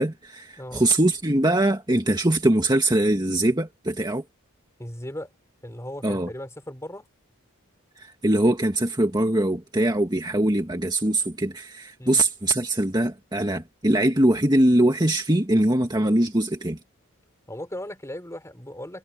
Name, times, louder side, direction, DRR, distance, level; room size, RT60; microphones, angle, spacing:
voice 1, 0.0-4.2 6.0-6.3 8.0-16.8, right 1 dB, 20° right, 1.9 m, -22 dB
voice 2, 0.5-0.9 4.8-5.3 5.6-7.1 12.0-12.2 17.5-19.0, left 1 dB, 15° left, 4.2 m, -37 dB
head